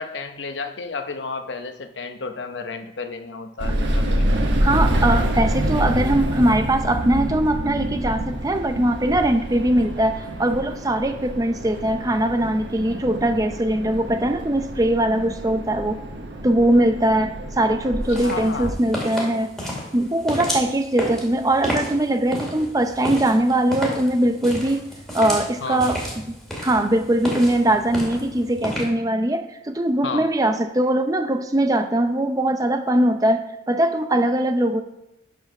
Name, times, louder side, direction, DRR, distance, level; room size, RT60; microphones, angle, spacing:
voice 1, 0.0-4.5 17.8-18.7 25.6-25.9 30.0-30.3, left 4 dB, 75° left, 7 dB, 0.8 m, -32 dB
sound 1, 3.6-18.7, right 1 dB, 70° right, 1.3 m, -27 dB
voice 2, 4.6-16.0 16.4-19.5 19.9-24.8 25.1-26.2 26.6-34.8, right 1 dB, 20° right, 8 dB, 0.6 m, -21 dB
sound 2, 18.0-28.8, equal, ahead, 2.3 m, -32 dB
11.0 x 4.6 x 6.0 m, 0.88 s
head